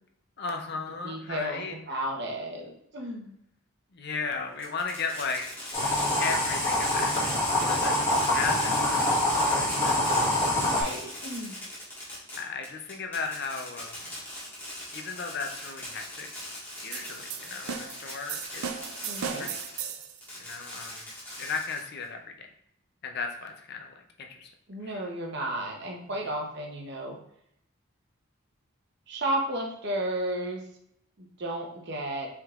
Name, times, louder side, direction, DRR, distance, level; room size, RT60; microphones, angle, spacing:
voice 1, 0.4-1.8 3.9-5.6 6.2-10.1 12.4-14.1 14.9-16.3 16.8-18.8 19.4-20.0 20.4-21.1 21.4-22.2 23.0-24.5 24.8-25.0 25.4-25.5, left 4 dB, 50° left, 4 dB, 0.5 m, -36 dB
voice 2, 1.0-3.4 10.4-11.6 19.0-19.5 24.7-27.2 29.1-30.6 31.2-32.3, right 1 dB, 50° right, 0 dB, 0.9 m, -33 dB
Fireworks, 4.6-19.8 20.2-22.0, left 1 dB, 10° left, 1.6 m, -40 dB
sound 1, 5.7-10.8, left 1 dB, 25° left, 1.8 m, -25 dB
sound 2, 16.9-20.2, right 7 dB, 80° right, 0.4 m, -36 dB
5.7 x 3.6 x 2.4 m, 0.75 s
head